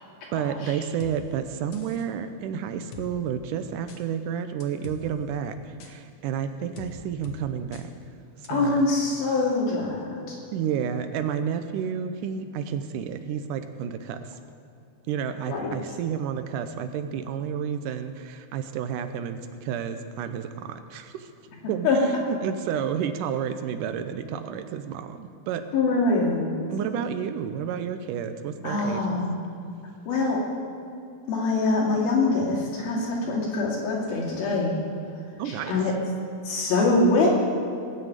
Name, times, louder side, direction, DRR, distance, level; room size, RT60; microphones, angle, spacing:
voice 1, 0.3-7.9 8.4-8.9 10.5-14.3 15.1-21.3 21.7-25.7 26.7-29.2 35.4-35.7, right 8 dB, 75° right, 9 dB, 2.1 m, -31 dB
sound 1, 1.0-1.2 1.7-2.1 2.9-3.1 3.9-4.0 4.6-5.0 5.8-5.9 6.8-6.9 7.2-7.4 7.7-7.9 8.4-8.5, left 5 dB, 60° left, 1.9 m, -42 dB
voice 2, 8.5-10.4 15.5-15.7 21.8-22.0 25.7-26.6 28.6-29.3 30.1-30.4 31.3-34.7 35.5-35.9 36.4-37.3, left 3 dB, 80° left, -3 dB, 4.6 m, -24 dB
19.5 x 6.7 x 9.0 m, 2.6 s
omnidirectional pair, 4.2 m